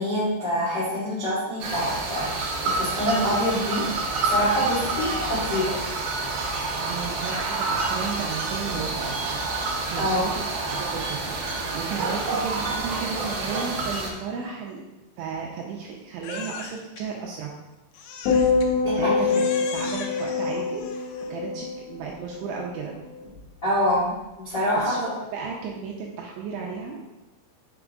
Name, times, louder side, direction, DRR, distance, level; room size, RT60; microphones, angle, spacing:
voice 1, 0.0-3.9 4.2-5.8 9.9-10.3 18.8-19.3 23.6-25.1, equal, 55° left, -10 dB, 1.2 m, -26 dB
sound 1, 1.6-14.1, right 3 dB, 70° right, 2.5 m, -28 dB
voice 2, 6.8-14.8 15.2-17.5 18.9-23.0 24.8-25.0 25.3-27.0, right 5 dB, 85° right, -1 dB, 2.8 m, -34 dB
Crying sobbing, 16.2-17.0 17.9-18.7 19.3-21.4, left 6 dB, 85° left, 2.7 m, -39 dB
sound 2, 18.3-22.6 22.9-23.4, left 5 dB, 70° left, 3.1 m, -25 dB
7.2 x 4.7 x 3.7 m, 0.99 s
omnidirectional pair, 5.9 m